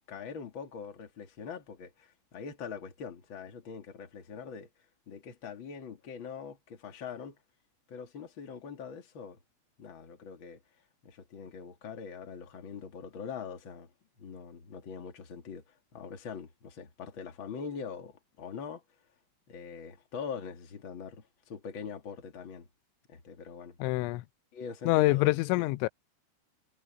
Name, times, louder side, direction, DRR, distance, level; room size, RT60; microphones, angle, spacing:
voice 1, 0.1-4.7 5.1-7.4 7.9-9.4 9.8-10.6 11.0-13.9 14.2-18.8 19.5-22.7 23.1-23.8 24.5-25.3 25.6-25.7, left 6 dB, 40° left, 2.1 m, -43 dB
voice 2, 23.8-24.2 24.9-25.9, left 22 dB, 85° left, 3.0 m, -26 dB
omnidirectional pair, 5.3 m